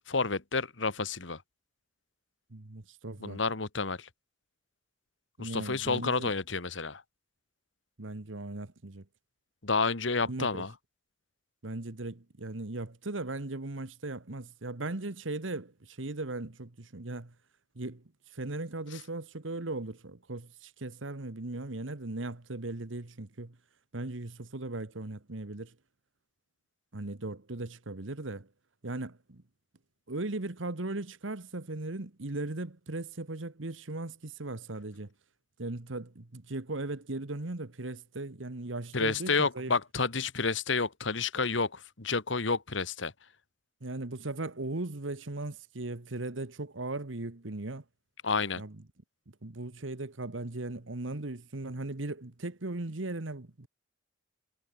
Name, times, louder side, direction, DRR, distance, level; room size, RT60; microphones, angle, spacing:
voice 1, 0.1-1.4 3.2-4.1 5.4-7.0 9.6-10.7 38.9-43.1 48.2-48.6, left 4 dB, 75° left, 1.8 m, -30 dB
voice 2, 2.5-3.4 5.4-6.3 8.0-9.1 10.2-10.7 11.6-17.3 17.7-23.6 23.9-25.7 26.9-28.5 28.8-29.4 30.1-35.1 35.6-39.7 43.8-47.8 48.6-48.8 49.3-53.7, right 2 dB, 85° right, 1.5 m, -38 dB
head